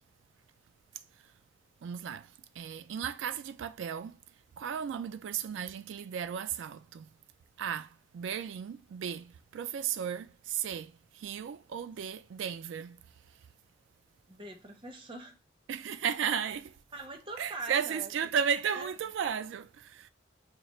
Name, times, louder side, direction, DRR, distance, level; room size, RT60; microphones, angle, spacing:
voice 1, 1.8-2.3 2.6-4.2 4.6-7.1 7.6-13.0 15.7-16.8 17.4-20.1, right 8 dB, 75° right, 0.3 m, -34 dB
voice 2, 14.3-15.4 16.9-18.1 18.8-18.9, right 2 dB, 30° right, 0.7 m, -43 dB
3.1 x 2.4 x 4.1 m
head